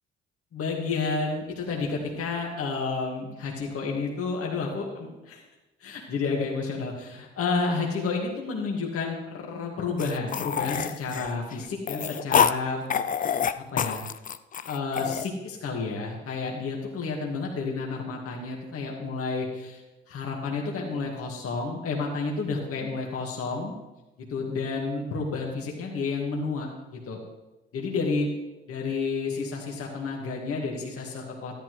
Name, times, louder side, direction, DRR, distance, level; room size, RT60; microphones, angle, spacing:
voice 1, 0.5-5.4 5.8-12.8 13.2-14.0 14.7-19.8 20.1-23.7 24.3-27.2 27.7-28.3 28.7-31.6, left 4 dB, 50° left, -1 dB, 2.1 m, -30 dB
sound 1, 10.0-12.6 12.9-15.3, left 7 dB, 30° left, 0.4 m, -26 dB
13.0 x 10.5 x 3.2 m, 1.0 s
hypercardioid pair, 50°, 29 cm